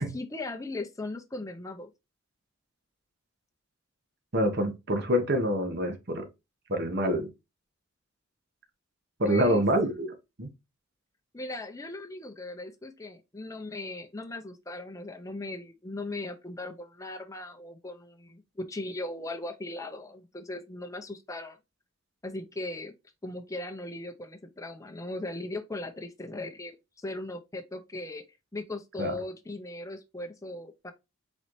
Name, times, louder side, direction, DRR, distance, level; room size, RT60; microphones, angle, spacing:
voice 1, 0.0-1.9 9.2-9.7 11.3-21.6 22.2-22.9 23.2-28.2 28.5-30.9, left 2 dB, 15° left, 0.6 m, -38 dB
voice 2, 4.3-6.3 6.7-7.3 9.2-10.1 10.4-10.5 29.0-29.2, equal, 55° right, 1.2 m, -26 dB
4.2 x 3.9 x 3.1 m
head